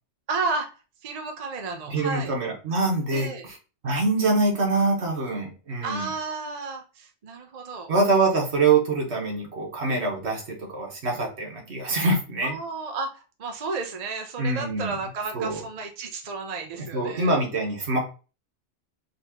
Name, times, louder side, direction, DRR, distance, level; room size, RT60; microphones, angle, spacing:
voice 1, 0.3-0.7 1.0-2.3 3.1-3.4 5.8-7.9 12.4-17.3, right 3 dB, 45° right, 4 dB, 0.6 m, -32 dB
voice 2, 1.9-3.6 3.8-6.1 7.9-12.6 14.4-14.9 15.3-15.6 16.9-18.0, right 3 dB, 65° right, 0 dB, 1.5 m, -24 dB
4.2 x 2.9 x 2.9 m, 0.33 s
omnidirectional pair, 1.2 m